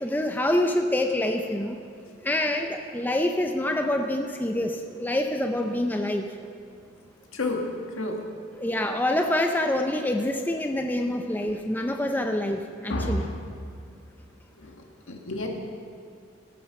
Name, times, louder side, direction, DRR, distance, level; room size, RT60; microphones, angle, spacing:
voice 1, 0.0-1.8 2.2-6.3 8.6-13.2, left 1 dB, 10° left, 4 dB, 0.6 m, -26 dB
voice 2, 7.3-8.2 12.9-13.4 14.6-14.8 15.1-15.5, left 1 dB, 90° left, 2 dB, 1.8 m, -30 dB
17.5 x 8.4 x 6.0 m, 2.4 s
head